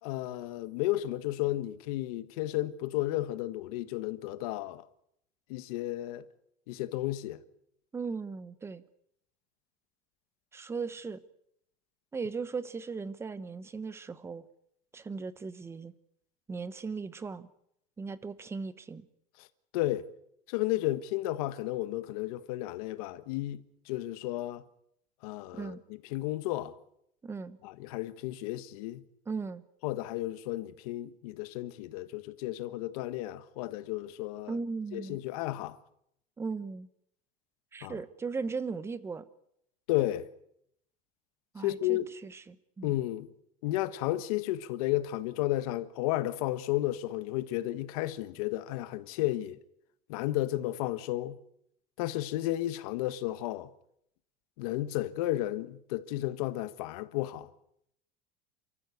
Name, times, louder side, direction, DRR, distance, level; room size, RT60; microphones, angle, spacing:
voice 1, 0.0-4.8 5.5-6.2 6.7-7.4 19.7-20.1 20.5-24.6 25.2-25.8 26.1-26.7 27.6-29.0 29.8-34.5 34.9-35.8 37.8-37.9 39.9-40.3 41.6-42.1 42.8-43.3 43.6-49.6 50.1-51.4 52.0-53.7 54.6-57.5, left 15 dB, 90° left, 1.4 m, -33 dB
voice 2, 7.9-8.8 10.5-11.2 12.1-14.4 14.9-15.9 16.5-17.5 18.0-19.0 25.5-25.8 27.2-27.6 29.3-29.6 34.5-35.2 36.4-36.9 37.7-39.3 41.5-42.9, right 4 dB, 15° right, 1.0 m, -37 dB
28.5 x 14.0 x 8.3 m
cardioid pair, 160°, 18 cm